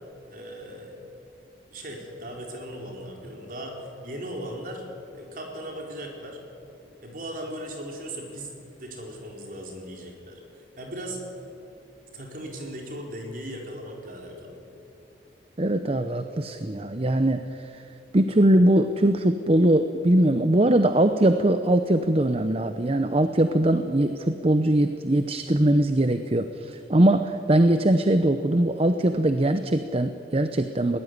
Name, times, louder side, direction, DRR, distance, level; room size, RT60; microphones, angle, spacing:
voice 1, 0.3-1.0 1.7-4.8 5.1-6.4 7.0-10.4 10.8-11.2 12.1-14.6, right 1 dB, 50° right, 1 dB, 4.5 m, -38 dB
voice 2, 15.6-17.8 18.1-31.0, right 1 dB, 35° right, 9 dB, 0.8 m, -21 dB
21.5 x 18.0 x 9.6 m, 2.9 s
head